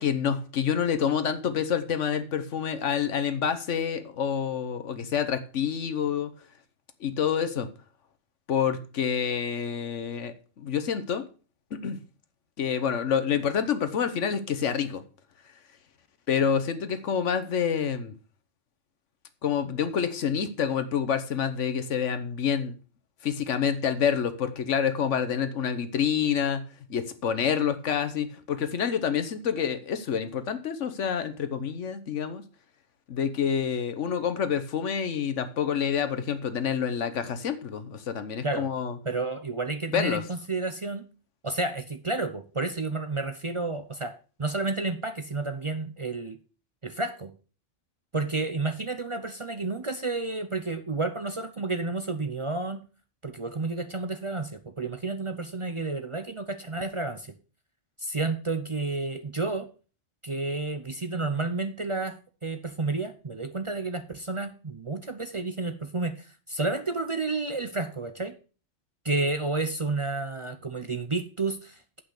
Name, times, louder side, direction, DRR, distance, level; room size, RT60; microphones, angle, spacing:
voice 1, 0.0-6.3 7.0-7.7 8.5-11.2 11.7-12.0 12.6-15.0 16.3-18.1 19.4-22.7 23.2-26.6 26.9-32.4 33.1-39.0 39.9-40.2, left 7 dB, 85° left, 10 dB, 1.3 m, -27 dB
voice 2, 39.0-41.1 41.4-46.4 46.8-47.3 48.1-52.8 53.2-57.3 58.0-59.7 60.2-68.3 69.0-72.0, right 3 dB, 35° right, 9 dB, 0.6 m, -31 dB
8.2 x 5.7 x 6.5 m, 0.36 s
omnidirectional pair, 1.2 m